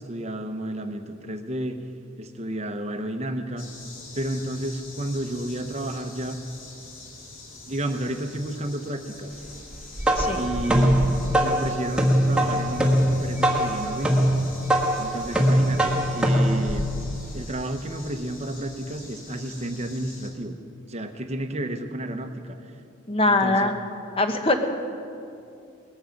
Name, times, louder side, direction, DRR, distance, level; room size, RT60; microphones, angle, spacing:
voice 1, 0.0-1.8 2.2-3.7 4.1-6.4 7.7-9.4 10.3-11.0 11.4-14.3 15.0-16.9 17.3-20.6 20.9-22.6 23.2-23.7, right 1 dB, 30° right, 6 dB, 0.9 m, -31 dB
sound 1, 3.6-20.3, left 3 dB, 60° left, 3.2 m, -45 dB
sound 2, 9.7-17.5, equal, 5° right, 1.4 m, -22 dB
voice 2, 23.1-23.7 24.2-24.6, left 2 dB, 25° left, 5 dB, 1.1 m, -22 dB
19.0 x 14.5 x 5.3 m, 2.6 s
head